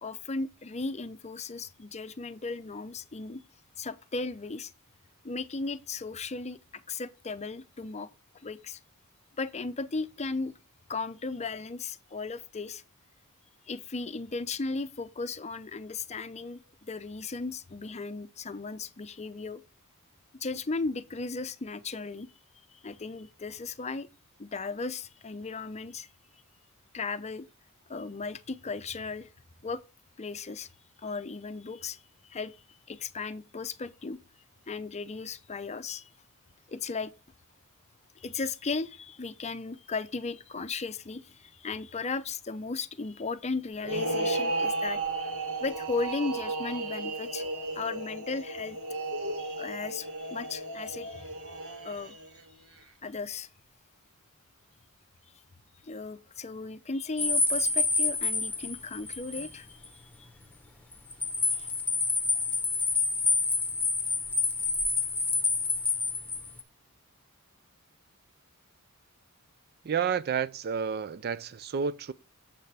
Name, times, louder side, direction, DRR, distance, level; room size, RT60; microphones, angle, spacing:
voice 1, 0.0-3.4 3.8-4.7 5.2-8.1 8.3-8.8 9.4-10.5 10.9-12.8 13.7-19.6 20.4-22.3 22.7-24.1 24.4-26.1 26.9-27.4 27.9-29.3 29.6-29.8 30.2-30.7 31.0-34.2 34.7-36.1 36.7-37.1 38.2-45.0 45.5-47.5 47.7-48.8 49.4-52.2 53.0-53.5 55.8-60.3 61.4-61.7, left 4 dB, 30° left, 0.6 m, -36 dB
sound 1, 43.8-52.4, right 2 dB, 65° right, 1.9 m, -34 dB
sound 2, 57.2-59.5 59.8-59.9 60.9-66.6, left 4 dB, 10° left, 1.1 m, -28 dB
voice 2, 69.8-72.1, right 6 dB, 45° right, 0.4 m, -30 dB
8.3 x 7.5 x 3.4 m
head